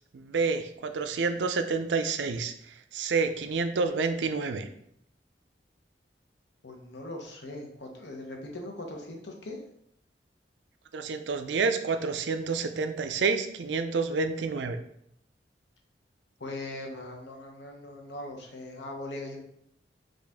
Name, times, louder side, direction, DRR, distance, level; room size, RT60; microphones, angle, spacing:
voice 1, 0.1-4.7 10.9-14.8, right 4 dB, 85° right, 8 dB, 0.4 m, -29 dB
voice 2, 6.6-9.6 16.4-19.4, left 2 dB, 75° left, 1 dB, 0.9 m, -40 dB
5.1 x 2.5 x 3.5 m, 0.72 s
head